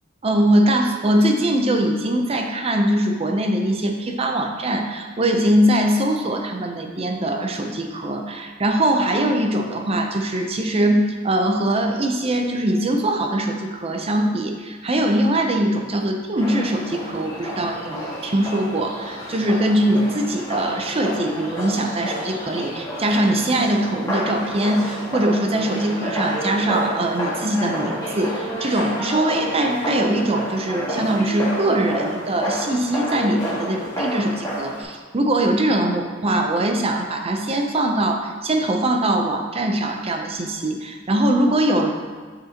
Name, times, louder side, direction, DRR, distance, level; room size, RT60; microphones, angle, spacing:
voice 1, 0.2-41.9, right 1 dB, 30° right, 3 dB, 0.6 m, -22 dB
sound 1, 16.4-34.8, equal, 15° left, 1.7 m, -30 dB
9.1 x 5.2 x 2.9 m, 1.5 s
head